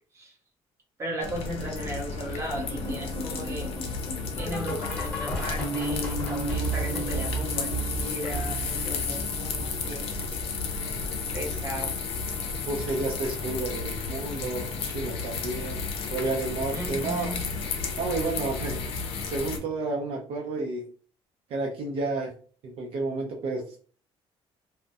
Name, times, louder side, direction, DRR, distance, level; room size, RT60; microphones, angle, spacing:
voice 1, 1.0-3.7 4.4-10.1 11.3-11.9 16.7-17.4, right 1 dB, 30° right, -1 dB, 0.8 m, -36 dB
sound 1, 1.2-19.6, left 5 dB, 75° left, 0.5 m, -33 dB
sound 2, 2.5-11.7 11.9-12.3 12.6-12.7 13.2-13.3 13.8-13.9, right 2 dB, 15° left, 1.0 m, -34 dB
voice 2, 12.7-15.8 16.1-17.3 18.0-18.8 19.3-20.8 21.5-22.3 22.6-23.8, right 3 dB, 65° right, 1 dB, 0.5 m, -31 dB
2.3 x 2.1 x 2.6 m, 0.42 s
cardioid pair, 140°, 10 cm